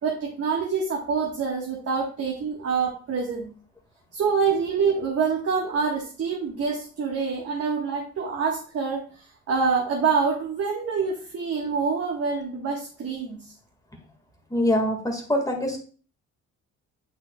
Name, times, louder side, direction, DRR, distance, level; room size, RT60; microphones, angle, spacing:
voice 1, 0.0-3.5 4.1-9.0 9.5-13.5, right 5 dB, 50° right, -1 dB, 1.4 m, -26 dB
voice 2, 14.5-15.8, left 1 dB, 10° left, 1 dB, 1.7 m, -24 dB
8.7 x 5.6 x 2.3 m, 0.40 s
cardioid pair, 90°, 30 cm